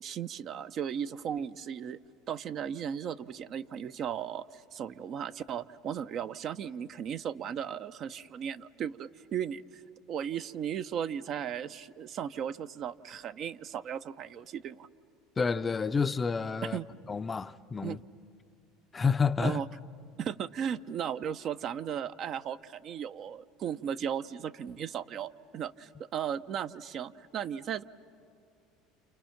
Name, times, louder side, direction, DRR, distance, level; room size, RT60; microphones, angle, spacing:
voice 1, 0.0-2.0 2.3-9.8 10.1-14.9 16.6-16.9 17.8-18.0 19.4-19.7 20.2-27.8, right 8 dB, 50° right, 0.6 m, -36 dB
voice 2, 15.4-16.8 17.1-18.0 18.9-19.6, left 5 dB, 25° left, 0.5 m, -29 dB
29.0 x 28.5 x 5.9 m
supercardioid pair, 95°, 0 cm